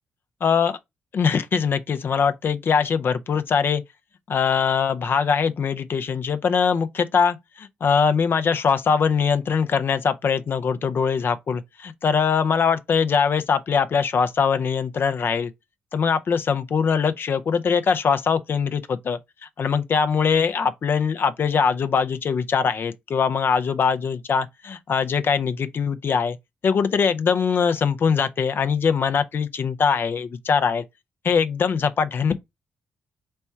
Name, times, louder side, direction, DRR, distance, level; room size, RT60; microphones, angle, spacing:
voice 1, 0.4-0.8 1.1-3.8 4.3-15.5 15.9-19.2 19.6-26.4 26.6-30.8 31.2-32.4, left 6 dB, 55° left, 0.5 m, -22 dB
4.3 x 2.3 x 4.3 m
hypercardioid pair, 45°, 4 cm